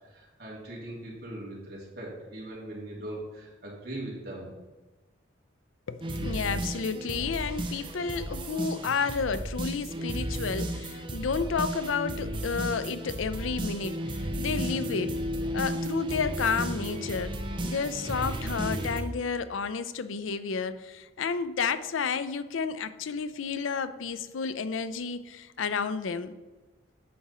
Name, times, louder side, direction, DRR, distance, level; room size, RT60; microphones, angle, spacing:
voice 1, 0.0-4.5, right 1 dB, 55° right, -5 dB, 2.9 m, -40 dB
voice 2, 5.9-15.2 15.5-26.3, left 5 dB, 90° left, 13 dB, 0.5 m, -31 dB
sound 1, 6.0-19.0, right 1 dB, 25° right, 0.7 m, -33 dB
8.5 x 6.0 x 4.2 m, 1.2 s
head